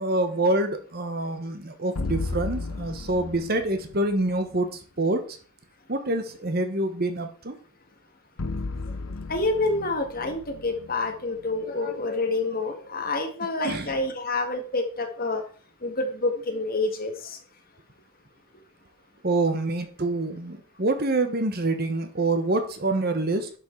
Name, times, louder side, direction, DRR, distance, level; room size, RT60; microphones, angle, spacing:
voice 1, 0.0-5.4 5.9-7.6 13.6-13.9 19.2-23.5, right 2 dB, 45° right, 8 dB, 1.2 m, -26 dB
sound 1, 2.0-4.1 8.4-11.6, left 3 dB, 80° left, 0.9 m, -34 dB
voice 2, 9.3-15.4 15.8-17.4, left 2 dB, 40° left, 4 dB, 1.9 m, -28 dB
11.5 x 6.3 x 4.7 m, 0.40 s
head